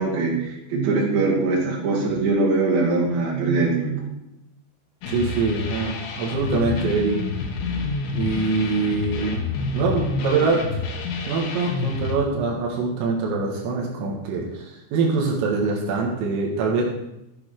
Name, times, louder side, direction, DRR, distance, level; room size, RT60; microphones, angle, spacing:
voice 1, 0.0-4.1, right 3 dB, 50° right, -3 dB, 3.8 m, -22 dB
sound 1, 5.0-12.1, left 3 dB, 70° left, 3.5 m, -28 dB
voice 2, 5.1-7.2 8.2-9.4 9.7-10.8 11.3-16.8, right 4 dB, 85° right, -2 dB, 4.3 m, -24 dB
13.5 x 8.9 x 4.5 m, 0.88 s
omnidirectional pair, 5.8 m